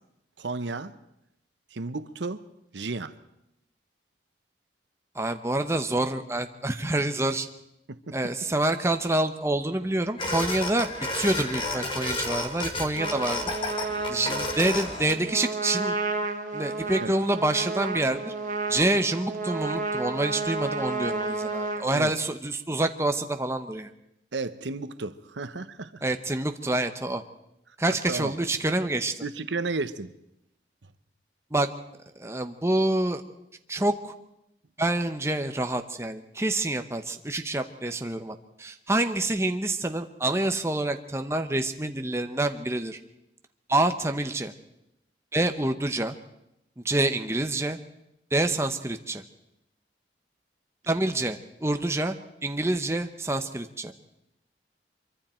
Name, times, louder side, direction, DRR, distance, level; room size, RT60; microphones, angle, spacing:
voice 1, 0.4-0.9 1.7-2.4 2.7-3.1 7.9-8.2 17.0-17.1 21.9-22.1 24.3-26.0 28.1-28.3 29.2-30.1, right 3 dB, 85° right, 12 dB, 0.9 m, -33 dB
voice 2, 5.1-7.5 8.1-13.4 14.1-16.0 16.5-18.3 18.7-23.9 26.0-27.2 27.8-29.2 31.5-31.7 32.2-33.2 33.7-34.1 34.8-43.0 43.7-44.5 45.3-46.2 46.8-47.8 48.3-49.2 50.9-52.1 52.4-53.9, right 2 dB, 15° right, 7 dB, 0.9 m, -27 dB
sound 1, 10.2-15.2, left 2 dB, 30° left, 2.0 m, -31 dB
Trumpet, 13.0-21.8, right 3 dB, 45° right, 1.6 m, -31 dB
25.0 x 24.0 x 4.4 m, 0.83 s
head